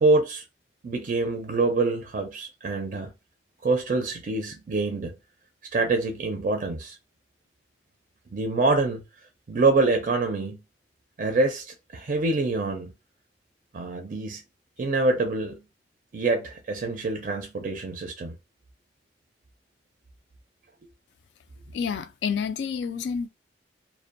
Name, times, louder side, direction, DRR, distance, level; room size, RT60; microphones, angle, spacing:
voice 1, 0.0-0.4 0.8-3.1 3.6-5.1 5.7-7.0 8.3-9.0 9.5-10.6 11.2-12.9 13.7-14.4 14.8-15.6 16.1-18.4, right 3 dB, 45° right, 0.4 m, -25 dB
voice 2, 21.7-23.3, left 6 dB, 75° left, 0.3 m, -29 dB
2.5 x 2.1 x 2.5 m
head